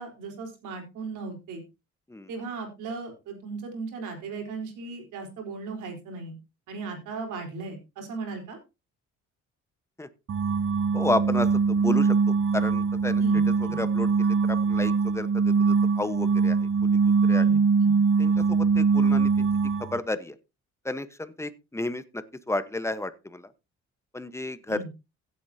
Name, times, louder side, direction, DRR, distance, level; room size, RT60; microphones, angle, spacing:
voice 1, 0.0-1.6 2.3-6.4 6.7-8.6 13.2-13.8 17.4-17.9 24.7-24.9, right 4 dB, 90° right, 3 dB, 4.1 m, -37 dB
sound 1, 10.3-20.0, right 5 dB, 45° right, 0.8 m, -22 dB
voice 2, 10.9-17.0 17.3-17.5 18.2-19.5 19.8-20.4 20.8-23.5 24.1-24.9, left 2 dB, 10° left, 12 dB, 1.1 m, -32 dB
16.0 x 8.3 x 2.8 m, 0.26 s
cardioid pair, 90°, 30 cm